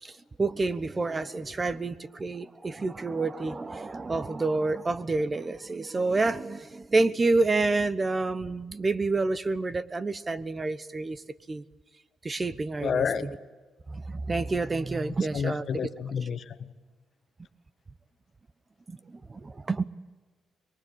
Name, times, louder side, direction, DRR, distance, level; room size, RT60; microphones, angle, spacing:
voice 1, 0.0-11.2 11.5-11.6 12.2-13.3 13.9-15.7 18.9-19.9, right 3 dB, 25° right, 16 dB, 1.0 m, -28 dB
voice 2, 12.8-13.3 15.3-16.7, left 7 dB, 55° left, 11 dB, 1.5 m, -30 dB
23.5 x 22.5 x 8.9 m, 1.3 s
cardioid pair, 90°, 0 cm